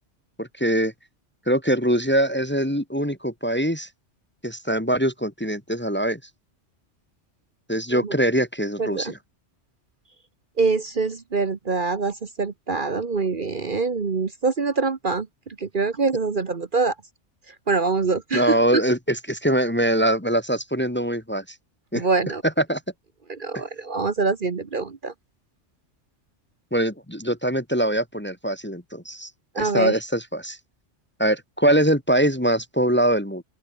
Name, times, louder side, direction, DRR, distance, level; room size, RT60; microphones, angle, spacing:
voice 1, 0.4-0.9 1.5-3.9 4.4-6.2 7.7-9.2 18.3-21.4 21.9-22.1 22.4-22.8 23.5-23.6 26.7-29.3 29.6-30.6 31.2-33.4, right 1 dB, 10° left, 1.5 m, -23 dB
voice 2, 8.8-9.1 10.6-15.3 15.6-16.9 17.7-18.8 21.9-22.4 23.3-25.1 29.5-29.9, right 4 dB, 45° right, 1.3 m, -24 dB
open air
omnidirectional pair, 1.2 m